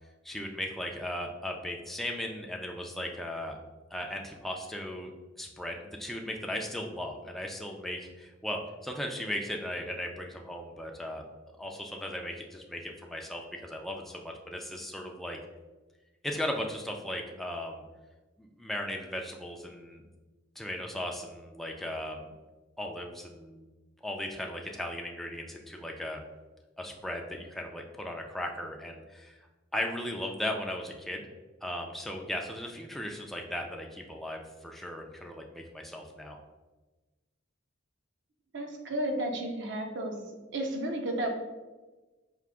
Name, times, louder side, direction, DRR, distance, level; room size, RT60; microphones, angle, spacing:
voice 1, 0.2-3.6 3.9-5.1 5.4-11.2 11.6-15.4 16.2-17.8 18.4-20.0 20.6-22.3 22.8-23.7 24.0-26.2 26.8-29.5 29.7-31.3 31.6-36.4, left 1 dB, ahead, 1 dB, 0.3 m, -37 dB
voice 2, 38.5-40.2 40.5-41.3, right 1 dB, 65° right, 2 dB, 0.6 m, -32 dB
4.6 x 2.5 x 3.5 m, 1.2 s
head